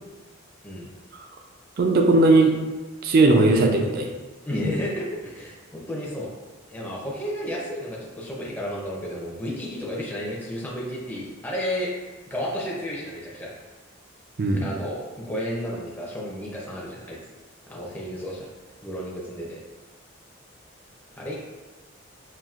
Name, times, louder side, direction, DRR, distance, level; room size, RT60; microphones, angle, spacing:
voice 1, 1.8-2.5 3.0-4.1 14.4-14.7, right 2 dB, 50° right, 3 dB, 0.4 m, -18 dB
voice 2, 4.4-6.3 6.7-13.5 14.5-17.2 17.7-18.5 18.8-19.6 21.2-21.4, equal, 10° left, -5 dB, 0.5 m, -32 dB
5.6 x 2.6 x 2.4 m, 1.2 s
head